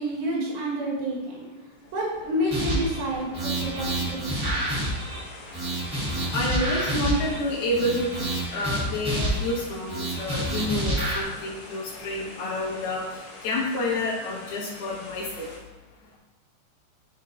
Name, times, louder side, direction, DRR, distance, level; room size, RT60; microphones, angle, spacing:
voice 1, 0.0-1.5 1.9-4.5, equal, 80° right, -4 dB, 3.9 m, -29 dB
sound 1, 1.7-15.6, left 1 dB, 85° left, 1.1 m, -44 dB
sound 2, 2.5-3.0 3.3-5.2 5.5-7.4 7.7-9.6 9.9-11.2, right 1 dB, 35° right, 1.2 m, -28 dB
voice 2, 6.3-8.1 8.5-15.5, left 1 dB, 65° left, -6 dB, 3.4 m, -29 dB
10.0 x 5.4 x 2.6 m, 1.1 s
omnidirectional pair, 4.9 m